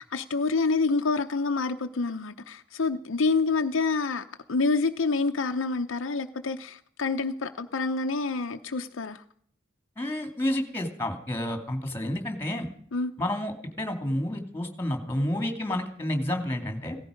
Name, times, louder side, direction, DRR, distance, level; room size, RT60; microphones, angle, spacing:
voice 1, 0.0-9.2 12.9-13.1, left 4 dB, 65° left, 0.7 m, -27 dB
voice 2, 10.0-12.7 13.2-17.0, left 1 dB, 10° left, 2.7 m, -30 dB
17.5 x 15.0 x 5.2 m
head